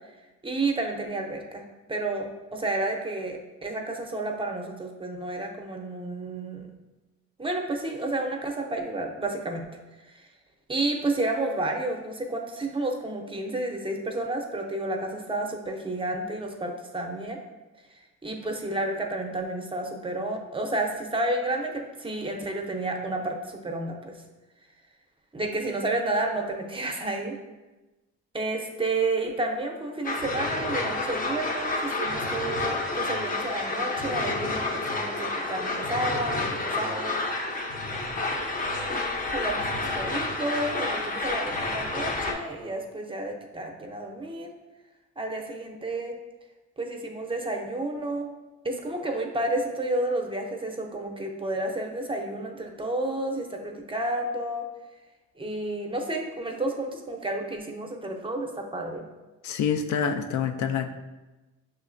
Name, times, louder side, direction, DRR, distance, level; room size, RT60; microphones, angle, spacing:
voice 1, 0.4-1.6 1.9-6.7 7.4-9.6 10.1-10.2 10.7-17.4 18.2-24.1 25.3-27.4 28.3-37.2 38.7-44.5 45.2-46.1 46.8-48.3 48.6-54.6 55.4-59.0, right 2 dB, 15° right, 2 dB, 0.6 m, -31 dB
sound 1, 30.0-42.3, left 2 dB, 30° left, 0.6 m, -29 dB
voice 2, 59.4-60.9, left 7 dB, 70° left, 7 dB, 0.4 m, -26 dB
5.6 x 3.1 x 2.5 m, 1.1 s
cardioid pair, 90°, 30 cm